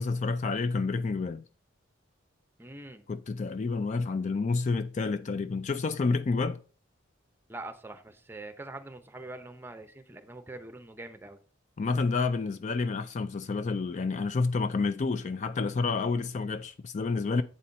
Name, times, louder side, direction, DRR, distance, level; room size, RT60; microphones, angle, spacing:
voice 1, 0.0-1.4 3.1-6.6 11.8-17.4, left 4 dB, 35° left, 0.3 m, -29 dB
voice 2, 2.6-3.1 7.5-11.4, right 2 dB, 10° right, 0.8 m, -43 dB
8.3 x 4.3 x 5.3 m
head